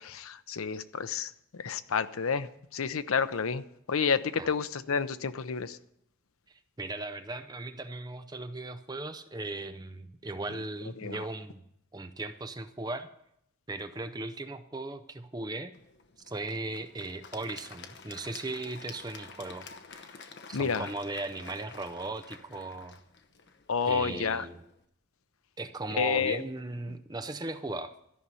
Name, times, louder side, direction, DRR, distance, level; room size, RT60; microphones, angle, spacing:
voice 1, 0.0-5.8 11.0-11.3 20.5-20.9 23.7-24.5 26.0-26.4, left 6 dB, 75° left, 12 dB, 0.6 m, -30 dB
voice 2, 6.8-11.6 11.9-13.1 13.7-15.7 16.3-19.7 19.9-20.2 20.5-23.0 23.8-24.6 25.6-27.9, right 2 dB, 20° right, 9 dB, 0.6 m, -37 dB
Applause / Crowd, 15.7-24.8, left 5 dB, 50° left, 0.9 m, -50 dB
13.5 x 5.6 x 9.5 m, 0.76 s
head